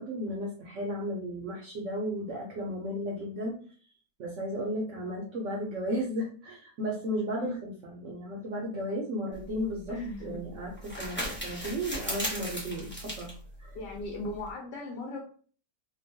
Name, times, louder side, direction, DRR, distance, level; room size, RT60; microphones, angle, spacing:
voice 1, 0.0-3.6 4.2-13.3 13.6-13.8, equal, 65° right, -1 dB, 0.7 m, -34 dB
sound 1, 9.3-14.5, equal, 10° left, 0.6 m, -38 dB
voice 2, 9.9-10.4 13.7-15.2, left 2 dB, 90° left, -1 dB, 1.2 m, -37 dB
2.9 x 2.1 x 2.7 m, 0.43 s
omnidirectional pair, 1.8 m